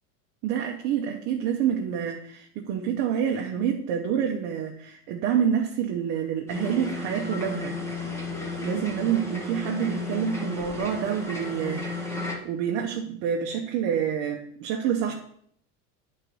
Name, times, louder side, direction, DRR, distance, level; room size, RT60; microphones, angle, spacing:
voice 1, 0.4-7.8 8.6-15.1, right 8 dB, 40° right, 1 dB, 0.7 m, -27 dB
sound 1, 6.5-12.4, left 2 dB, 10° left, 0.8 m, -33 dB
9.7 x 4.0 x 4.6 m, 0.65 s
supercardioid pair, 170°, 35 cm